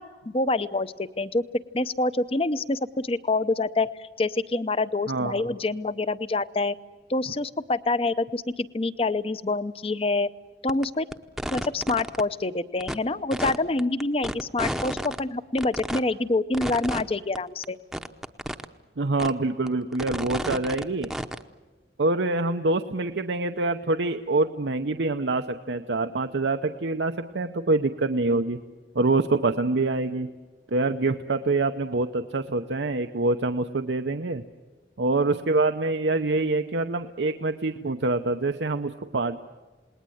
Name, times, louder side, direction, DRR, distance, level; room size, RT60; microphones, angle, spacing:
voice 1, 0.0-1.4 1.7-6.7 7.1-10.3 10.6-11.1 11.5-17.8, left 2 dB, 35° left, 15 dB, 0.7 m, -26 dB
voice 2, 5.1-5.4 19.0-21.1 22.0-28.6 28.9-30.3 30.7-34.4 35.0-39.4, right 2 dB, 85° right, 7 dB, 0.8 m, -25 dB
sound 1, 10.7-10.8 11.1-12.2 12.8-12.9 13.3-15.2 15.6-16.0 16.5-17.0 17.3-17.4 17.6-17.7 17.9-18.6 19.2-19.3 19.7-21.4, equal, ahead, 0.8 m, -31 dB
28.5 x 20.0 x 7.9 m, 1.3 s
head